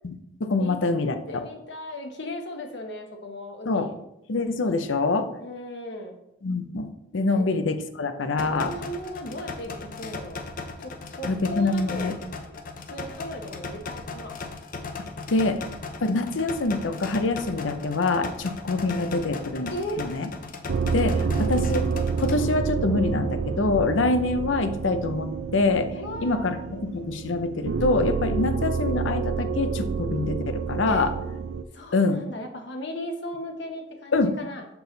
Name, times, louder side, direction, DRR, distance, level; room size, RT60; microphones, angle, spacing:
voice 1, 0.4-1.4 3.7-3.9 4.3-5.3 6.4-8.7 11.2-12.1 15.3-15.6 16.0-19.7 20.0-20.3 20.9-21.9 22.2-25.9 26.2-31.1 31.9-32.2 34.1-34.3, left 3 dB, 85° left, 8 dB, 0.6 m, -25 dB
voice 2, 1.3-3.9 5.4-6.2 7.3-7.4 8.4-10.4 10.8-12.1 12.4-12.6 12.9-14.4 19.7-20.0 25.9-26.7 30.8-31.1 31.7-34.7, left 1 dB, 65° left, 3 dB, 1.0 m, -37 dB
sound 1, 8.4-22.4, left 3 dB, 45° left, 0.6 m, -37 dB
sound 2, 20.7-31.6, right 5 dB, 75° right, 0.4 m, -28 dB
6.9 x 4.7 x 3.9 m, 0.82 s
head